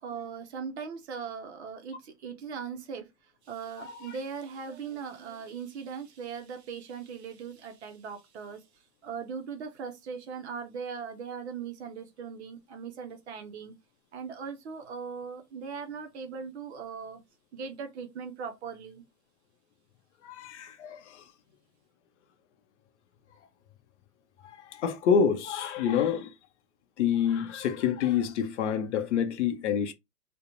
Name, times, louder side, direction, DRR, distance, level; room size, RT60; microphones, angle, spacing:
voice 1, 0.0-3.1 3.4-8.6 9.0-13.7 14.1-17.2 17.5-19.0, right 6 dB, 45° right, 0.5 m, -39 dB
voice 2, 3.8-4.1 20.2-21.2 24.6-26.3 27.0-29.9, left 7 dB, 45° left, 0.6 m, -27 dB
2.3 x 2.2 x 2.9 m
hypercardioid pair, 125°, 48 cm